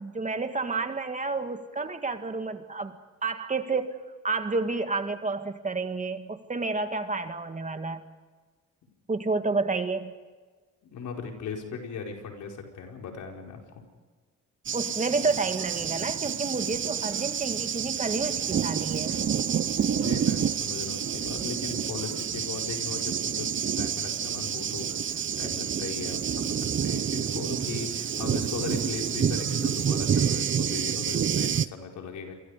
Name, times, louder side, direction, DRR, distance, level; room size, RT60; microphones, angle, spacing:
voice 1, 0.0-4.0 4.2-8.0 9.1-10.1 14.7-19.2, right 3 dB, 25° right, 7 dB, 2.0 m, -30 dB
voice 2, 10.9-13.6 19.9-32.3, left 5 dB, 75° left, 1 dB, 5.1 m, -38 dB
Thunder, 14.7-31.7, right 8 dB, 40° right, 0.8 m, -28 dB
29.0 x 23.5 x 5.1 m, 1.4 s
cardioid pair, 90°, 30 cm